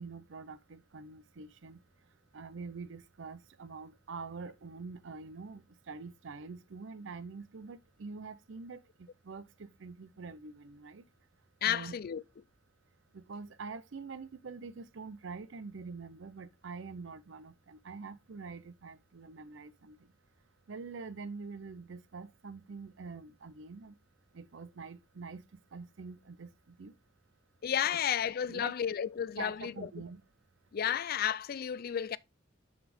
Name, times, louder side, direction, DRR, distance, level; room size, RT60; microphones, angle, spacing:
voice 1, 0.0-1.8 2.3-11.0 11.6-11.9 13.1-20.0 20.7-23.9 24.3-25.4 25.7-26.9 28.5-28.7 29.4-30.2, right 4 dB, 70° right, 0.6 m, -45 dB
voice 2, 11.6-12.2 27.6-29.9 30.7-32.2, left 9 dB, 50° left, 0.4 m, -32 dB
7.3 x 5.9 x 3.5 m
head